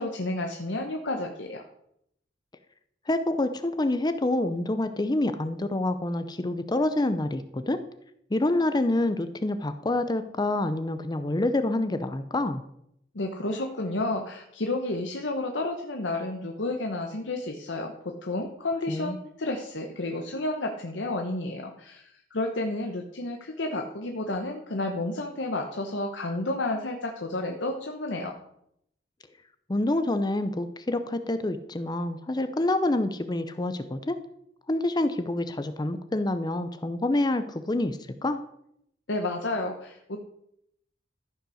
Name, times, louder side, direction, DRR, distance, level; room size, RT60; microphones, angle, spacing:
voice 1, 0.0-1.6 13.1-28.4 39.1-40.2, left 2 dB, 85° left, 3 dB, 1.1 m, -31 dB
voice 2, 3.1-7.8 8.3-12.6 18.9-19.2 29.7-34.2 34.7-38.4, left 2 dB, 25° left, 10 dB, 0.6 m, -27 dB
14.0 x 5.6 x 6.3 m, 0.76 s
head